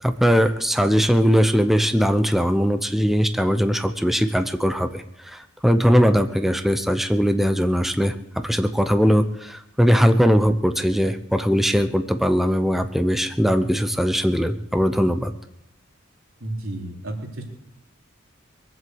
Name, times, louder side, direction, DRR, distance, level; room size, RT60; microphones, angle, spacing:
voice 1, 0.0-15.3, equal, ahead, 8 dB, 0.7 m, -20 dB
voice 2, 16.4-17.5, right 1 dB, 85° right, 0 dB, 3.3 m, -32 dB
22.0 x 7.8 x 7.8 m, 0.80 s
head